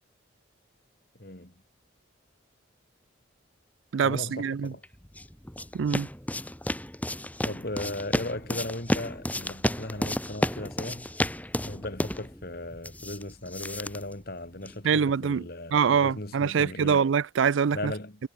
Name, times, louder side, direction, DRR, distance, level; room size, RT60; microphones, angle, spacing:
voice 1, 1.2-1.5 4.0-4.8 7.4-11.1 11.6-17.1 17.7-18.3, left 1 dB, 50° left, 2.8 m, -37 dB
voice 2, 3.9-4.7 5.7-6.1 14.8-15.4 15.7-17.9, right 6 dB, 70° right, 0.4 m, -24 dB
sound 1, 4.8-14.8, left 1 dB, 10° left, 2.4 m, -32 dB
head